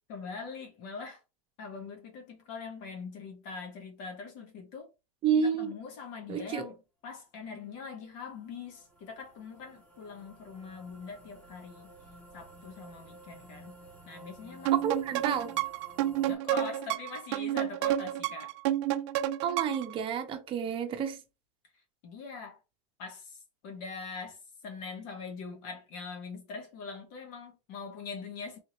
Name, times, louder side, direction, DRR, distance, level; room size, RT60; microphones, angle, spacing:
voice 1, 0.1-1.2 1.6-4.9 5.4-6.8 7.0-11.9 12.3-13.8 14.0-14.8 16.3-18.5 22.0-22.6 23.0-28.6, left 5 dB, 50° left, 1.5 m, -42 dB
voice 2, 5.2-5.7 6.3-6.7 14.8-15.5 19.4-21.2, right 7 dB, 30° right, 0.9 m, -30 dB
sound 1, 7.9-16.4, right 1 dB, 10° left, 1.4 m, -53 dB
sound 2, 14.7-19.9, right 13 dB, 65° right, 0.5 m, -30 dB
3.6 x 2.8 x 3.0 m
supercardioid pair, 135°, 17 cm